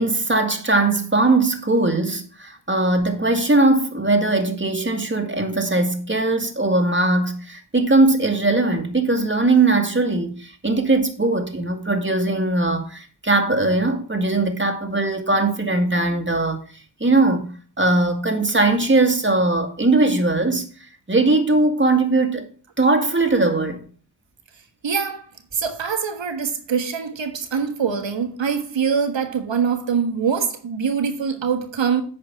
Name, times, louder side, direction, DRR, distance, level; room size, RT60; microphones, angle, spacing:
voice 1, 0.0-16.6 17.0-17.5 17.8-20.7 21.1-22.5 22.8-23.8, right 2 dB, 25° right, 2.2 m, -20 dB
voice 2, 24.8-32.0, right 6 dB, 85° right, 1.5 m, -24 dB
8.7 x 5.1 x 7.0 m
cardioid pair, 45°, 44 cm